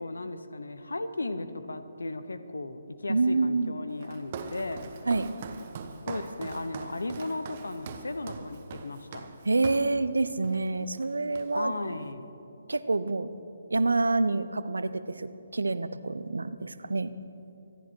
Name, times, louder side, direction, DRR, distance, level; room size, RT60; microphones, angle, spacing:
voice 1, 0.0-4.9 6.1-9.3 11.5-12.3, left 2 dB, 75° left, 11 dB, 1.0 m, -36 dB
voice 2, 3.1-3.8 5.1-5.3 9.4-11.7 12.7-13.3 13.7-17.1, right 3 dB, 75° right, 13 dB, 0.7 m, -27 dB
Walk footsteps, 4.0-10.0 10.4-10.7 11.0-11.8, right 5 dB, 35° right, 1.2 m, -42 dB
25.5 x 10.5 x 4.7 m, 2.8 s
figure-of-eight pair, 140°, 0 cm